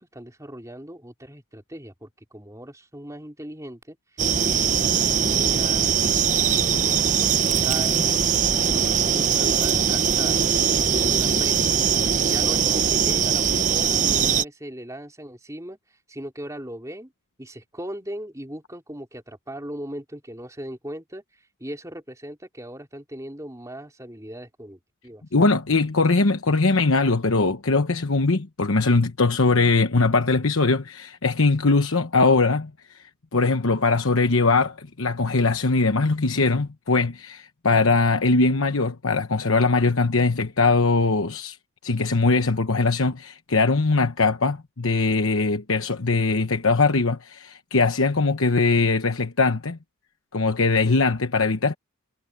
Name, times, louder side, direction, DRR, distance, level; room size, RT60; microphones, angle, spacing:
voice 1, 0.0-6.0 6.5-8.3 8.7-11.8 12.3-15.8 16.1-17.1 17.4-25.2, right 1 dB, 15° right, 3.7 m, -38 dB
sound 1, 4.2-14.4, right 7 dB, 35° right, 0.9 m, -21 dB
voice 2, 25.3-33.0 33.3-41.6 41.8-49.8 50.3-51.7, left 3 dB, 70° left, 1.1 m, -21 dB
head